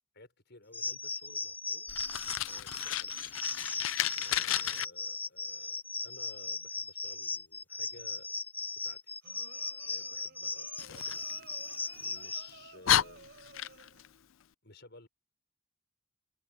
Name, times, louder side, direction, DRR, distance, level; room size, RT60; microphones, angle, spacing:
voice 1, 0.1-1.9 2.5-3.1 4.1-8.3 8.8-9.1 9.8-13.3 14.6-15.1, left 2 dB, 60° left, 6.1 m, -56 dB
sound 1, 0.7-12.5, left 3 dB, 10° left, 0.3 m, -38 dB
Fire, 1.9-4.8 10.8-12.0 12.5-12.6 12.8-14.1, left 12 dB, 75° left, 0.5 m, -32 dB
sound 2, 9.2-14.1, right 4 dB, 60° right, 4.2 m, -56 dB
head